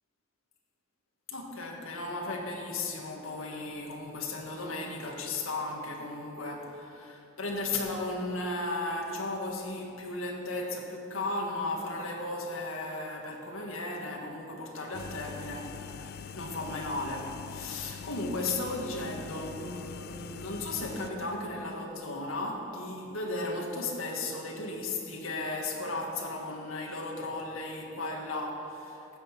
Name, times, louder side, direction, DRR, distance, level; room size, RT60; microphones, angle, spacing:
voice 1, 1.3-29.2, left 2 dB, 85° left, 0 dB, 1.9 m, -35 dB
sound 1, 14.9-21.1, left 6 dB, 50° left, 0.4 m, -43 dB
13.0 x 6.7 x 8.3 m, 2.9 s
head